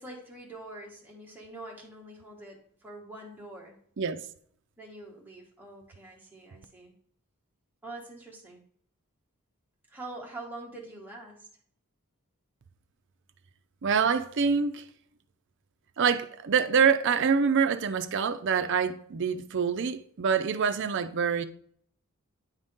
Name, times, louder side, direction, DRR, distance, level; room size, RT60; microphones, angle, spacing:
voice 1, 0.0-3.8 4.8-6.9 7.8-8.6 9.9-11.5, right 2 dB, 10° right, 1.5 m, -45 dB
voice 2, 13.8-14.8 16.0-21.5, right 6 dB, 55° right, 0.5 m, -25 dB
9.6 x 4.0 x 3.6 m
head